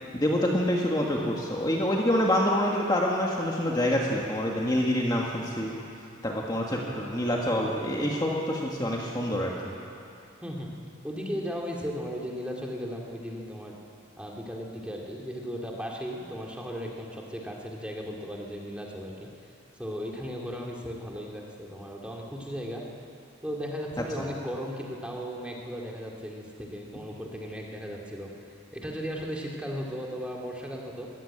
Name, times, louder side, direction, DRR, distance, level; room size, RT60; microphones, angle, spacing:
voice 1, 0.1-5.7 6.2-9.7, left 1 dB, 20° left, -2 dB, 1.6 m, -26 dB
voice 2, 11.0-13.8 14.2-19.3 19.8-22.8 23.4-28.3 28.7-31.1, equal, 5° right, -2 dB, 2.3 m, -36 dB
21.0 x 15.0 x 8.9 m, 2.6 s
head